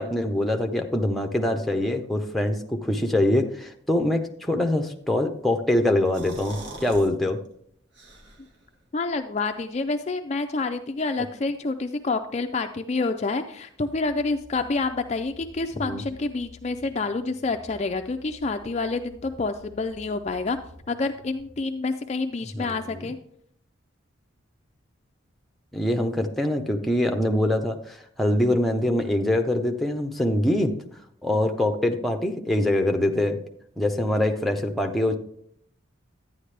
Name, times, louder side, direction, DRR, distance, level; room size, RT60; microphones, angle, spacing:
voice 1, 0.0-7.4 15.7-16.0 22.5-23.1 25.7-30.7 31.2-33.4 33.8-35.1, left 1 dB, ahead, 4 dB, 0.7 m, -24 dB
sound 1, 5.9-7.1 7.5-7.6 7.9-8.6, right 2 dB, 60° right, 1.7 m, -41 dB
voice 2, 8.9-20.6 20.9-23.2, left 3 dB, 35° left, 6 dB, 0.4 m, -28 dB
sound 2, 13.8-21.5, left 2 dB, 85° right, 3.1 m, -50 dB
11.5 x 9.2 x 3.3 m, 0.67 s
head